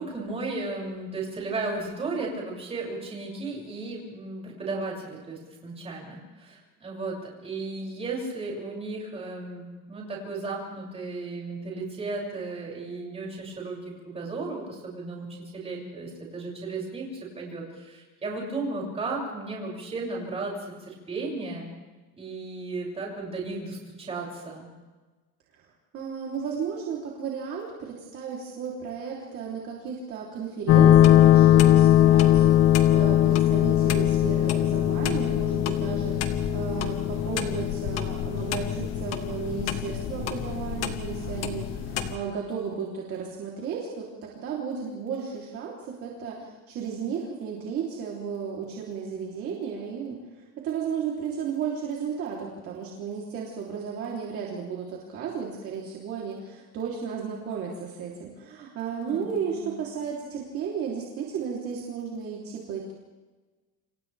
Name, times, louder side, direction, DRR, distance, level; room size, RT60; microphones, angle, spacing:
voice 1, 0.0-15.3 15.5-17.1 17.3-21.7 22.2-24.7 59.0-59.7, right 3 dB, 20° right, -3 dB, 7.0 m, -35 dB
voice 2, 25.6-50.2 50.6-62.9, right 6 dB, 45° right, -3 dB, 3.6 m, -34 dB
sound 1, 30.7-42.1, left 11 dB, 50° left, 1.8 m, -21 dB
30.0 x 27.5 x 3.5 m, 1.3 s
cardioid pair, 175°, 33 cm